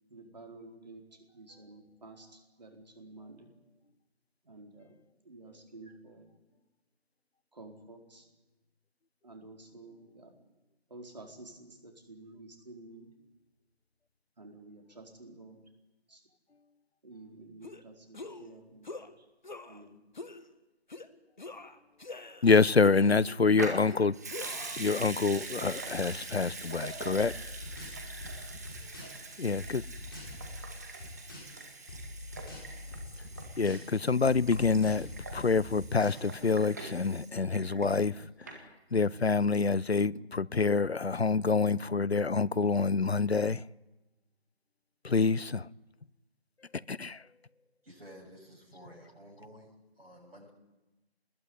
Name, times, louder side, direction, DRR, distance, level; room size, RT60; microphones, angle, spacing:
voice 1, 0.1-1.0 1.3-3.5 4.4-5.0 5.2-6.2 7.5-8.3 9.2-10.3 10.9-13.1 14.4-15.6 16.1-16.2 17.0-19.2 19.6-20.0 28.3-28.4, right 2 dB, 40° right, 4.5 m, -51 dB
sound 1, 17.6-17.8 18.1-18.5 18.8-19.1 19.4-19.8 20.2-20.4 20.9-21.1 21.4-22.5 22.8-23.5 23.9-24.8, left 3 dB, 45° left, 1.6 m, -44 dB
voice 2, 22.4-24.2 24.8-27.3 29.4-29.8 33.6-38.6 38.9-43.6 45.0-45.7 46.9-47.2, left 4 dB, 75° left, 0.8 m, -27 dB
Water tap faucet / Sink (filling or washing) / Liquid, 23.6-38.2 38.5-38.6, right 3 dB, 15° right, 2.0 m, -43 dB
sound 2, 27.2-29.3 29.5-31.6 31.9-34.0 34.2-36.5, left 1 dB, 20° left, 6.2 m, -44 dB
voice 3, 47.8-50.5, equal, 65° right, 7.6 m, -52 dB
25.0 x 21.0 x 9.6 m
figure-of-eight pair, 165°, 32 cm